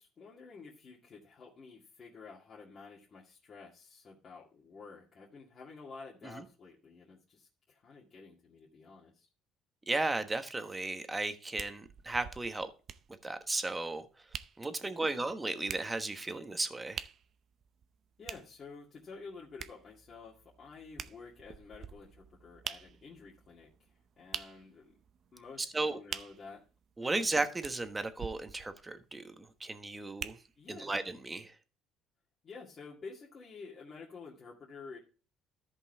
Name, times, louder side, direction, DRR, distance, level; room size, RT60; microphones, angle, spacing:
voice 1, 0.0-9.3 14.8-15.1 18.2-23.9 24.2-24.9 25.3-26.6 27.0-27.3 30.6-30.9 32.4-35.0, left 4 dB, 40° left, 2.1 m, -51 dB
voice 2, 9.9-12.7 13.2-14.1 14.6-17.1 25.6-26.0 27.0-30.4 30.7-31.5, right 2 dB, 15° right, 1.2 m, -35 dB
sound 1, 11.6-30.9 31.4-31.5, right 8 dB, 50° right, 0.6 m, -47 dB
13.5 x 5.5 x 3.5 m
supercardioid pair, 95°, 0 cm